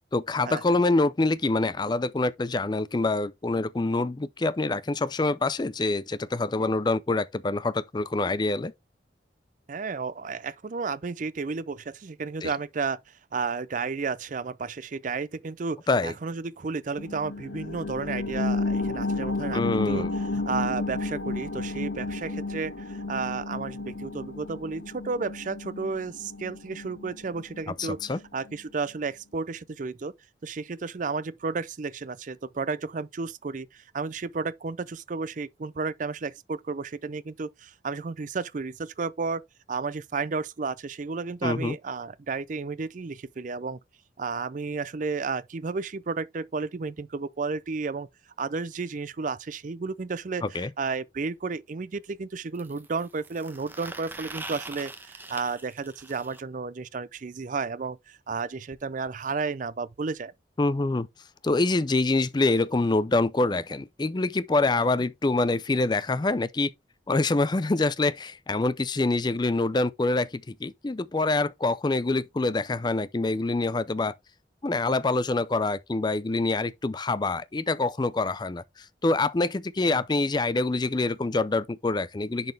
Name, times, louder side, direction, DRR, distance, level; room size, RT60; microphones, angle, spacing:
voice 1, 0.1-8.7 12.4-12.5 15.9-16.1 19.5-20.1 27.8-28.2 41.4-41.8 50.4-50.7 60.6-61.1 61.4-66.7 67.1-74.1 74.6-78.6 79.0-82.5, left 2 dB, 25° left, 0.4 m, -25 dB
voice 2, 9.7-13.0 13.3-20.1 20.3-30.1 30.4-39.4 39.7-43.8 44.2-48.1 48.4-60.3 64.8-64.9 79.9-80.0, right 4 dB, 45° right, 0.5 m, -32 dB
sound 1, 17.0-28.1 28.5-28.6, left 3 dB, 85° left, 1.3 m, -32 dB
sound 2, 50.5-50.6 52.5-56.4 58.3-58.4 58.7-58.8 59.1-59.2 60.1-60.2, right 2 dB, 10° right, 0.9 m, -43 dB
10.5 x 4.2 x 3.3 m
head